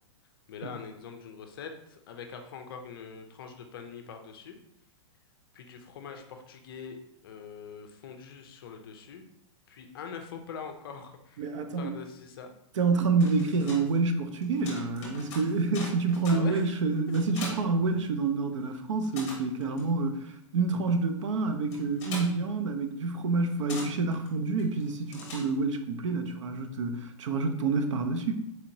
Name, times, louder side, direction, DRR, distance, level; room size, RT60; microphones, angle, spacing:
voice 1, 0.5-4.6 5.5-9.2 9.7-11.5 11.8-12.5 16.3-16.7, left 6 dB, 45° left, 5 dB, 0.5 m, -43 dB
voice 2, 11.4-11.9 12.8-28.3, right 4 dB, 65° right, 7 dB, 0.5 m, -28 dB
sound 1, 13.1-18.6 18.8-25.9, left 3 dB, 25° left, 1.0 m, -44 dB
4.2 x 2.8 x 2.7 m, 0.74 s
hypercardioid pair, 170°, 17 cm